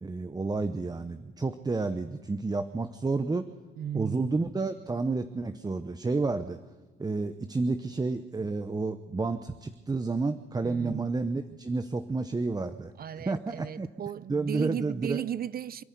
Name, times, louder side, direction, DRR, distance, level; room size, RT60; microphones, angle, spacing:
voice 1, 0.0-3.5 3.9-6.6 7.0-13.9 14.3-15.3, right 3 dB, 20° right, 0.9 m, -30 dB
voice 2, 3.8-4.4 10.6-11.1 13.0-15.8, right 9 dB, 50° right, 0.7 m, -35 dB
26.5 x 10.5 x 9.4 m
cardioid pair, 90°, 20 cm